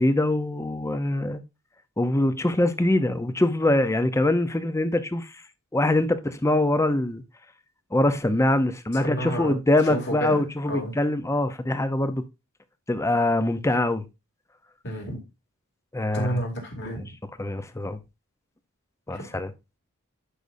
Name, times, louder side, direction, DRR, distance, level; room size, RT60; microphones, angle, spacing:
voice 1, 0.0-1.4 2.0-5.4 5.7-7.2 7.9-12.2 12.9-14.0 15.9-16.4 17.4-18.0 19.1-19.5, left 1 dB, 15° left, 0.6 m, -23 dB
voice 2, 9.0-9.6 9.8-10.9 14.8-15.2 16.1-17.1 19.1-19.3, equal, 50° left, 2.7 m, -31 dB
11.5 x 5.3 x 2.6 m
head